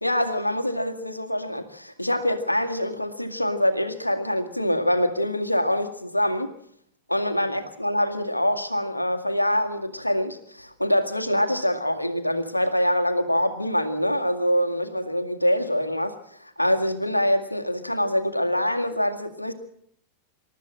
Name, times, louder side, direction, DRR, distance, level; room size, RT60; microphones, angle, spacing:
voice 1, 0.0-6.5 7.1-19.5, left 1 dB, 85° left, 7 dB, 2.0 m, -25 dB
27.0 x 13.5 x 7.6 m, 0.71 s
figure-of-eight pair, 90°, 0 cm